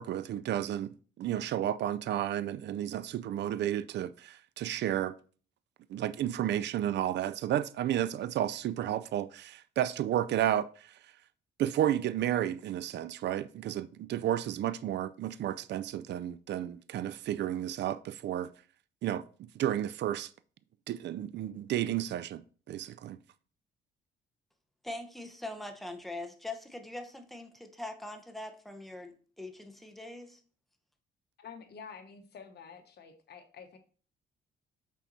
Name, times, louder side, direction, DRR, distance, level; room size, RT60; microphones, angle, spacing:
voice 1, 0.0-5.2 5.9-10.7 11.6-18.5 19.0-20.3 20.9-23.2, right 11 dB, 60° right, 0.4 m, -32 dB
voice 2, 24.8-30.4, left 2 dB, ahead, 1.0 m, -42 dB
voice 3, 31.4-33.8, left 6 dB, 55° left, 1.2 m, -49 dB
5.9 x 4.2 x 4.1 m
cardioid pair, 90°, 20 cm